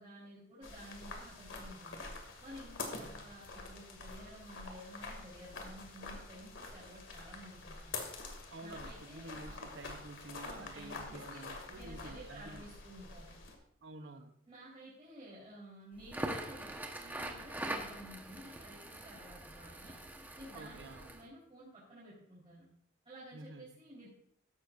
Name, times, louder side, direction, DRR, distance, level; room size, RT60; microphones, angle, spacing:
voice 1, 0.0-2.0 2.4-8.0 8.6-9.6 10.4-13.4 14.5-16.7 17.0-20.0 20.4-22.6 23.0-24.1, right 1 dB, 30° right, -8 dB, 3.9 m, -53 dB
sound 1, 0.6-13.6, left 3 dB, 85° left, 2.4 m, -47 dB
voice 2, 3.0-3.3 8.5-12.7 13.8-14.4 20.5-21.1 23.3-23.7, right 2 dB, 65° right, 8 dB, 0.8 m, -50 dB
Crackle, 16.0-21.2, right 1 dB, 10° right, 1.1 m, -43 dB
15.0 x 11.5 x 2.6 m, 0.70 s
head